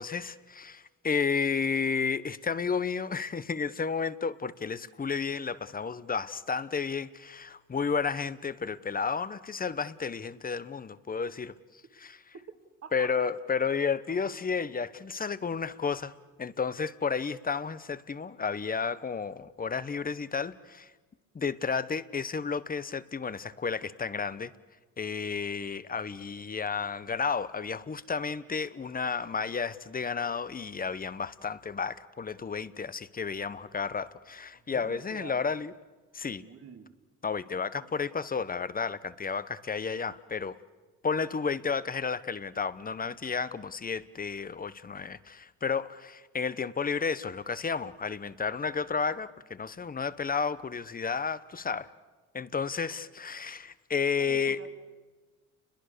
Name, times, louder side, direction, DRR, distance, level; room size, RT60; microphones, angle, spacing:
voice 1, 0.0-11.5 12.0-12.2 12.9-16.1 16.4-20.9 21.3-24.5 25.0-35.7 36.1-36.4 37.2-40.6 41.0-51.9 52.3-54.6, left 5 dB, 30° left, 15 dB, 1.0 m, -32 dB
voice 2, 12.8-13.3 14.1-14.3 34.7-35.6 36.4-36.9 37.8-37.9 54.2-54.7, right 6 dB, 50° right, 6 dB, 2.6 m, -47 dB
29.5 x 22.0 x 6.8 m, 1.3 s
cardioid pair, 90°, 30 cm